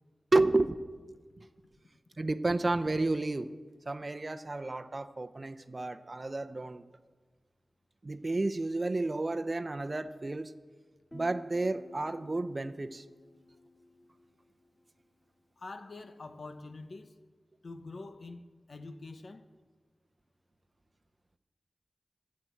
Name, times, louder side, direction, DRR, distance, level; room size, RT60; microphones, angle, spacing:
voice 1, 0.3-0.8 2.2-3.5 3.9-6.8 8.0-10.5 11.1-13.0, right 2 dB, 40° right, 0.6 m, -31 dB
Guitar, 11.1-14.7, left 1 dB, 15° left, 1.2 m, -51 dB
voice 2, 15.6-17.2 17.6-19.5, left 3 dB, 65° left, 0.9 m, -45 dB
22.5 x 7.6 x 4.5 m
wide cardioid pair, 75°, 0 cm